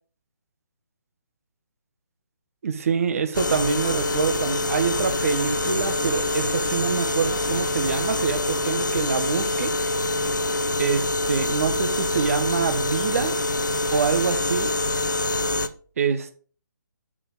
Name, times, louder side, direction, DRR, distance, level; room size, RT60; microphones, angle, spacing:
voice 1, 2.6-9.7 10.8-13.3 13.9-14.7 16.0-16.3, right 6 dB, 45° right, 1.1 m, -25 dB
sound 1, 3.3-15.7, left 2 dB, 70° left, 0.8 m, -25 dB
7.2 x 5.0 x 4.9 m
figure-of-eight pair, 145°, 10 cm